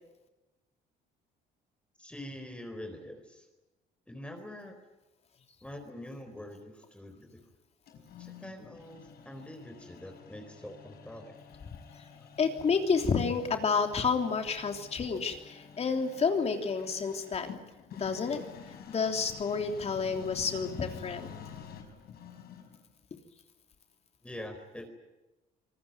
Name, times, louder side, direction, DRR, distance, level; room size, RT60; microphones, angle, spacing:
voice 1, 2.0-3.5 4.1-4.7 5.6-7.4 8.2-11.4 12.2-12.3 24.2-24.9, left 1 dB, 5° left, 5 dB, 4.2 m, -45 dB
sound 1, 7.9-22.9, left 7 dB, 65° left, 5.5 m, -49 dB
voice 2, 12.4-17.5 18.0-21.3, left 5 dB, 40° left, 5 dB, 3.3 m, -30 dB
26.5 x 19.5 x 9.3 m, 1.0 s
cardioid pair, 110°, 17 cm